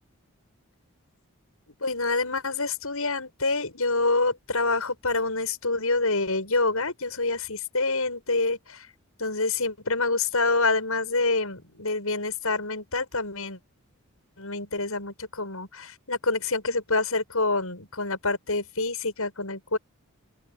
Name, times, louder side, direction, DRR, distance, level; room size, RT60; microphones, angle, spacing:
voice 1, 1.8-8.9 9.2-13.6 14.4-19.8, left 3 dB, 75° left, 7.7 m, -27 dB
open air
head